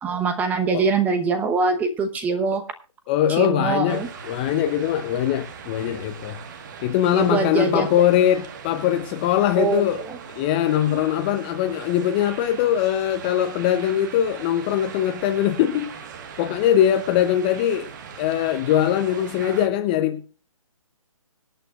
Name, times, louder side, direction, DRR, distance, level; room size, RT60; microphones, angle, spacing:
voice 1, 0.0-2.6 3.3-4.1 7.1-7.9 9.6-10.2, right 4 dB, 10° right, 0.9 m, -23 dB
voice 2, 3.1-6.4 6.8-10.0 10.4-15.9 16.4-17.9 18.2-20.4, left 11 dB, 15° left, 0.6 m, -21 dB
sound 1, 3.9-19.7, right 6 dB, 35° right, 1.5 m, -40 dB
25.0 x 8.9 x 2.4 m
hypercardioid pair, 150°, 18 cm